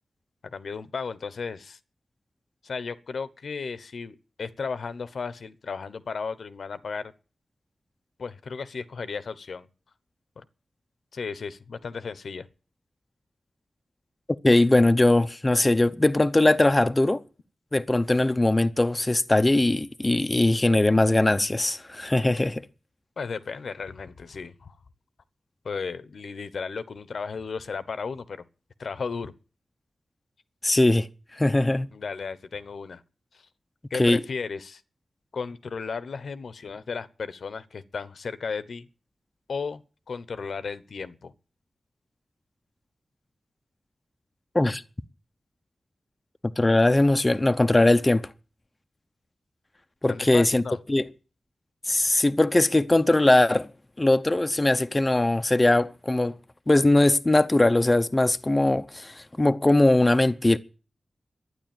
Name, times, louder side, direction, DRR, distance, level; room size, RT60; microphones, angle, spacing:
voice 1, 0.4-1.8 2.6-7.1 8.2-9.7 10.4-10.5 11.1-12.5 23.2-24.8 25.6-28.5 28.8-29.3 31.9-33.0 33.3-33.4 33.9-34.8 35.3-38.9 39.5-39.8 40.1-41.3 50.1-50.8, left 5 dB, 80° left, 1.0 m, -34 dB
voice 2, 14.4-17.2 17.7-22.6 30.6-31.1 31.3-31.9 34.0-34.2 44.5-44.8 46.6-48.3 50.0-50.6 50.9-51.1 51.9-53.7 54.0-56.3 56.7-60.6, left 2 dB, 20° left, 0.6 m, -20 dB
12.0 x 9.8 x 9.1 m
wide cardioid pair, 120°, 0 cm